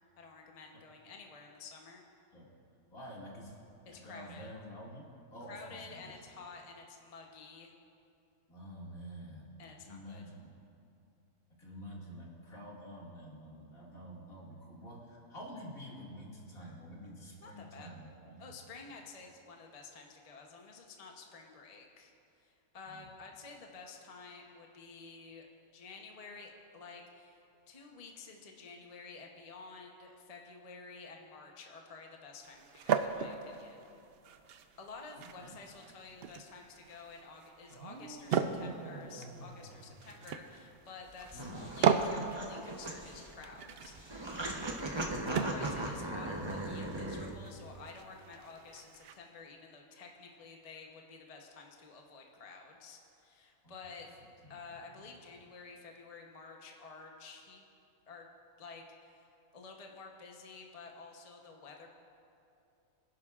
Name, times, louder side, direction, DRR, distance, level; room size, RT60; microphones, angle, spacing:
voice 1, 0.2-2.0 3.9-4.5 5.5-7.7 9.6-10.2 17.4-17.9 18.4-25.5 25.7-33.9 34.8-44.2 45.0-54.1 54.5-57.6 58.1-58.3 58.6-61.9, left 4 dB, 30° left, 1 dB, 0.8 m, -51 dB
voice 2, 2.9-3.6 3.9-6.1 8.5-10.5 11.5-18.4 22.8-23.1 35.2-35.5 41.3-41.7 44.3-44.7 53.6-53.7 54.4-54.6 55.0-55.1, equal, 70° left, -5 dB, 2.6 m, -49 dB
sound 1, 32.4-49.2, right 7 dB, 65° right, 0.6 m, -38 dB
sound 2, 37.7-40.8, right 3 dB, 45° right, 1.0 m, -50 dB
sound 3, 41.1-47.3, right 1 dB, 25° right, 0.7 m, -39 dB
24.0 x 11.0 x 2.4 m, 2.7 s
omnidirectional pair, 1.5 m